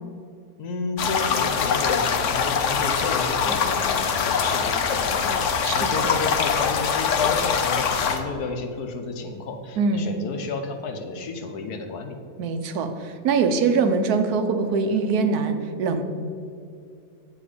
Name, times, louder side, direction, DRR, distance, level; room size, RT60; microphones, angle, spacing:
voice 1, 0.6-12.2, left 4 dB, 80° left, 5 dB, 1.4 m, -31 dB
sound 1, 1.0-8.2, left 6 dB, 60° left, 1.0 m, -23 dB
voice 2, 5.6-6.1 9.8-10.1 12.4-16.0, right 4 dB, 80° right, 7 dB, 1.3 m, -23 dB
8.7 x 7.6 x 5.0 m, 2.4 s
omnidirectional pair, 1.6 m